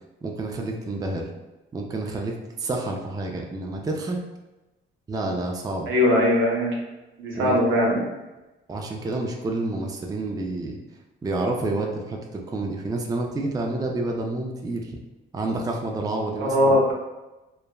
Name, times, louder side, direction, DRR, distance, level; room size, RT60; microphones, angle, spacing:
voice 1, 0.2-1.2 1.7-4.2 5.1-5.9 7.3-7.6 8.7-10.8 11.2-15.0 15.3-16.6, right 2 dB, 20° right, 1 dB, 0.4 m, -29 dB
voice 2, 5.9-6.7 7.2-8.0 16.4-16.9, left 1 dB, 85° right, -2 dB, 0.8 m, -20 dB
3.3 x 2.0 x 2.2 m, 1.0 s
cardioid pair, 90°, 20 cm